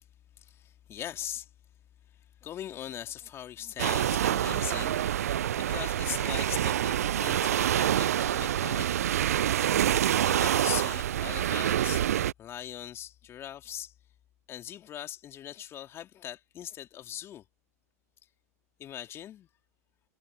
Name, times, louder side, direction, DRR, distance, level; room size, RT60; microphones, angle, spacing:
voice 1, 0.4-1.5 2.4-9.0 10.2-12.1 12.4-13.9 14.5-17.4 18.8-19.5, left 11 dB, 30° left, 2.7 m, -40 dB
sound 1, 3.8-12.3, right 11 dB, 65° right, 0.5 m, -27 dB
figure-of-eight pair, 95°, 9 cm